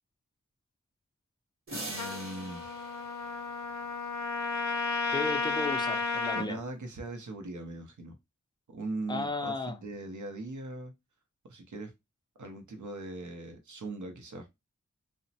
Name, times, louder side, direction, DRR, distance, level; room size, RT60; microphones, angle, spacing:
sound 1, 1.7-4.4, right 1 dB, 45° right, 0.9 m, -43 dB
voice 1, 1.9-2.8 6.4-8.2 8.7-10.9 11.4-11.9 12.4-14.5, right 2 dB, 75° right, 0.6 m, -40 dB
Trumpet, 2.0-6.5, left 4 dB, 70° left, 0.5 m, -33 dB
voice 2, 5.1-6.6 9.1-9.7, left 3 dB, 15° left, 0.4 m, -34 dB
2.9 x 2.0 x 2.7 m
wide cardioid pair, 50°, 30 cm